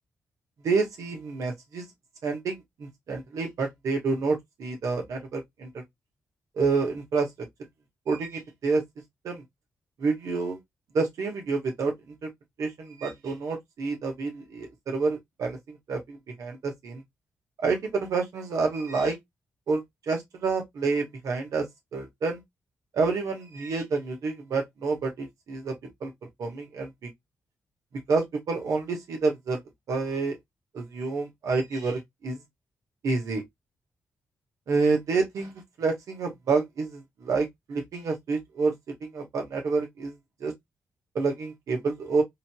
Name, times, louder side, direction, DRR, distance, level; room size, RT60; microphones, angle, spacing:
voice 1, 0.6-1.9 2.2-5.8 6.6-7.3 8.1-8.8 9.2-9.4 10.0-10.6 10.9-12.3 12.6-17.0 17.6-19.2 19.7-19.8 20.1-21.6 21.9-22.4 22.9-25.7 26.0-26.1 26.4-27.1 28.1-29.6 29.9-30.4 30.7-32.4 33.0-33.4 34.7-35.5 35.8-38.7 39.0-40.1 40.4-40.5 41.1-42.2, right 4 dB, 75° right, 1.5 m, -28 dB
3.8 x 2.9 x 2.3 m
cardioid pair, 85°, 6 cm